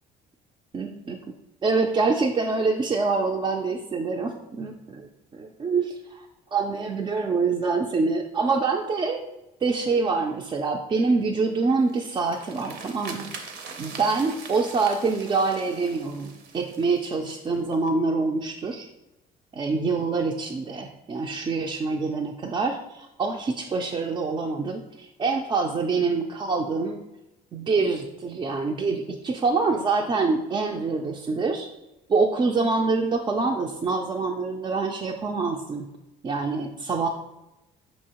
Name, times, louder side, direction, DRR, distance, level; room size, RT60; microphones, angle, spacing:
voice 1, 0.7-1.2 1.6-9.2 9.6-13.3 13.8-18.9 19.5-27.0 27.5-31.7 32.1-35.9 36.2-37.1, right 4 dB, 25° right, 1 dB, 0.3 m, -25 dB
sound 1, 11.8-17.9, right 5 dB, 75° right, 0.6 m, -42 dB
5.4 x 2.9 x 2.9 m, 0.94 s
cardioid pair, 110°, 17 cm